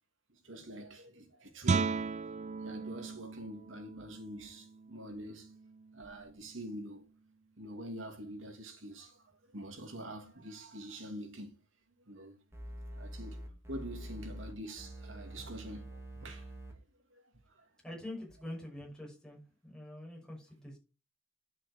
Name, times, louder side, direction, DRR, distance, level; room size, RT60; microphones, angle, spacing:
voice 1, 0.4-2.1 2.6-5.5 5.9-7.0 7.6-9.2 9.5-11.5 12.1-12.4 12.9-13.4 13.7-16.5 17.1-17.2 17.5-17.7, right 1 dB, 85° right, 2.7 m, -45 dB
Guitar, 1.6-7.2, right 4 dB, 35° right, 0.4 m, -37 dB
sound 1, 12.5-14.5 14.8-16.7, right 1 dB, 15° right, 3.1 m, -45 dB
voice 2, 17.8-20.8, left 1 dB, 5° left, 6.2 m, -45 dB
11.0 x 6.0 x 5.1 m
head